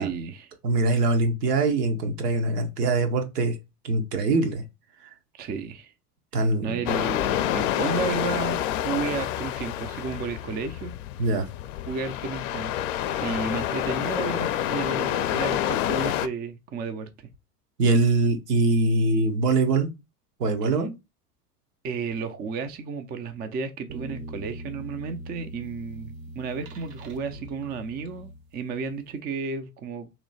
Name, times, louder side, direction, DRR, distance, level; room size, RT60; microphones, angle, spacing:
voice 1, 0.0-0.5 5.3-5.9 6.3-10.9 11.9-12.7 13.2-17.3 20.6-20.7 21.8-30.1, right 5 dB, 20° right, 0.5 m, -33 dB
voice 2, 0.6-3.6 3.8-4.6 6.3-6.8 11.2-11.5 17.8-19.9 20.4-20.9, right 3 dB, 75° right, 1.1 m, -23 dB
sound 1, 6.9-16.3, left 12 dB, 55° left, 0.5 m, -28 dB
sound 2, 23.9-28.8, right 1 dB, 55° right, 0.9 m, -41 dB
3.1 x 3.0 x 4.0 m
hypercardioid pair, 85°, 47 cm